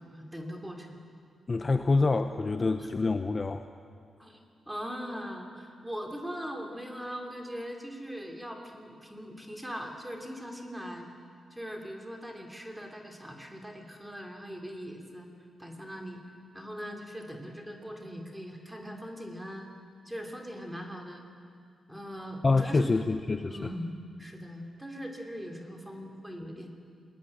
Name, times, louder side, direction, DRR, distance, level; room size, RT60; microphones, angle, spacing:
voice 1, 0.1-1.0 2.8-2.9 4.2-11.1 11.5-15.3 15.6-16.2 16.5-19.7 20.0-21.3 21.9-22.9 23.5-26.7, equal, 5° right, 2 dB, 3.0 m, -40 dB
voice 2, 1.5-3.6 22.4-23.7, left 3 dB, 25° left, 8 dB, 0.8 m, -26 dB
27.0 x 21.0 x 9.9 m, 2.3 s
wide cardioid pair, 165°, 0 cm